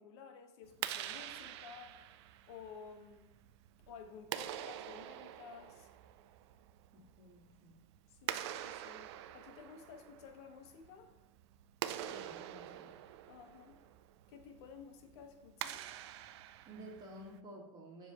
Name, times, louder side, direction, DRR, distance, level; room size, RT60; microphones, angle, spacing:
voice 1, 0.0-2.0 2.4-3.3 3.9-5.9 8.1-11.1 13.3-13.8 14.3-15.9, left 6 dB, 60° left, 1.1 m, -53 dB
Clapping, 0.6-17.4, right 12 dB, 60° right, 0.5 m, -46 dB
voice 2, 6.9-7.8 11.9-12.9 16.6-18.1, right 1 dB, 25° right, 1.5 m, -52 dB
7.2 x 3.2 x 6.0 m
supercardioid pair, 160°, 16 cm